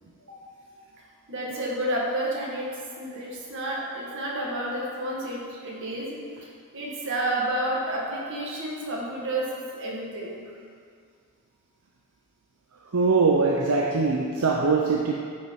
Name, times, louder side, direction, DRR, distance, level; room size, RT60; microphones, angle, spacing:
voice 1, 1.3-6.2 6.7-10.4, right 1 dB, 60° right, -4 dB, 1.9 m, -30 dB
voice 2, 12.9-15.1, right 4 dB, 80° right, -1 dB, 0.7 m, -22 dB
9.2 x 5.7 x 4.8 m, 2.2 s
head